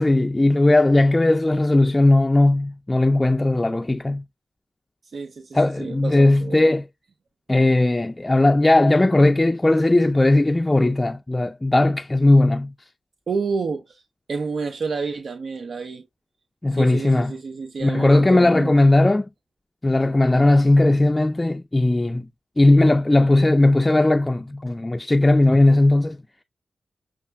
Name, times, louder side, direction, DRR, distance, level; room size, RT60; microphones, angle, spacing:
voice 1, 0.0-4.2 5.5-6.9 7.5-12.7 16.6-17.3 17.8-19.3 19.8-22.3 22.6-26.2, left 2 dB, 25° left, 0.3 m, -17 dB
voice 2, 5.1-6.7 13.3-14.0 14.3-16.0 16.7-18.9, right 4 dB, 70° right, 0.6 m, -29 dB
6.5 x 2.4 x 2.3 m
cardioid pair, 50°, 0 cm